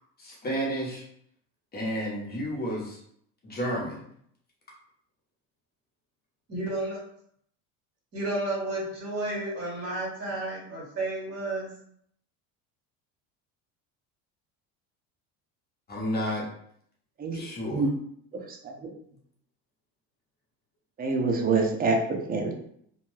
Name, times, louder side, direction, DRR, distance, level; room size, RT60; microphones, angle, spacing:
voice 1, 0.2-1.0 1.7-3.0 3.4-4.0 15.9-16.4 17.3-17.8, equal, 25° left, -3 dB, 0.8 m, -31 dB
voice 2, 6.5-7.0 8.1-11.7, right 2 dB, 40° right, -3 dB, 1.4 m, -32 dB
voice 3, 18.3-18.9 21.0-22.6, right 3 dB, 25° right, 3 dB, 0.4 m, -27 dB
2.7 x 2.1 x 3.1 m, 0.68 s
cardioid pair, 130°, 35 cm